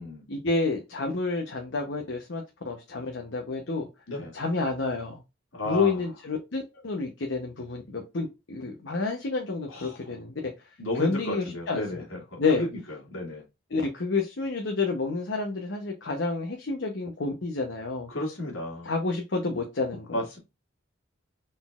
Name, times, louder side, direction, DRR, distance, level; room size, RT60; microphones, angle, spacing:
voice 1, 0.3-3.9 4.3-5.2 5.7-10.7 11.0-12.0 12.4-12.6 13.7-18.1 18.8-20.2, left 3 dB, 60° left, 2 dB, 0.8 m, -29 dB
voice 2, 5.5-6.0 9.7-10.0 10.8-12.7 13.1-13.4 18.1-18.9 20.1-20.4, left 1 dB, 80° left, -1 dB, 1.9 m, -33 dB
4.1 x 3.9 x 2.3 m, 0.25 s
head